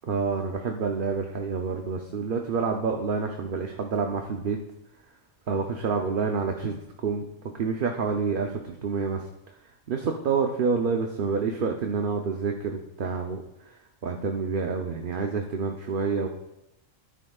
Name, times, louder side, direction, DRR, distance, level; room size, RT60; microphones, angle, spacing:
voice 1, 0.0-4.6 5.5-7.3 7.6-9.3 9.9-16.3, right 5 dB, 50° right, 3 dB, 0.8 m, -28 dB
13.0 x 9.8 x 2.4 m, 0.88 s
omnidirectional pair, 1.3 m